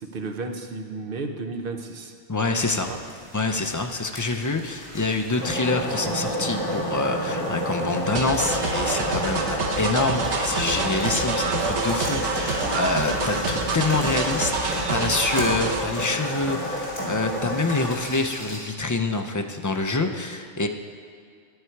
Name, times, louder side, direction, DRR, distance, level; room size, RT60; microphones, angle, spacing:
voice 1, 0.0-2.1 2.9-3.0, right 3 dB, 55° right, 4 dB, 1.0 m, -33 dB
voice 2, 2.3-2.9 3.3-20.7, left 3 dB, 30° left, 5 dB, 0.3 m, -26 dB
sound 1, 2.5-18.6, left 1 dB, 80° left, 3.1 m, -41 dB
sound 2, 5.4-18.0, equal, 30° right, 2.8 m, -30 dB
sound 3, 8.1-15.8, right 3 dB, 85° right, 1.2 m, -27 dB
11.0 x 9.6 x 4.6 m, 2.2 s
omnidirectional pair, 1.2 m